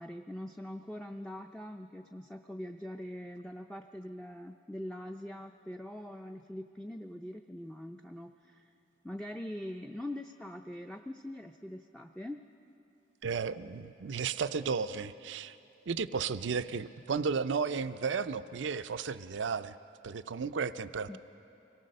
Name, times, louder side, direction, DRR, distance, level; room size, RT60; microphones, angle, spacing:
voice 1, 0.0-8.7 9.0-12.4 21.1-21.2, left 1 dB, 5° left, 3 dB, 0.4 m, -43 dB
voice 2, 13.2-15.6 15.9-19.8 20.0-21.2, right 5 dB, 85° right, 12 dB, 0.5 m, -33 dB
24.5 x 18.0 x 6.5 m, 2.8 s
head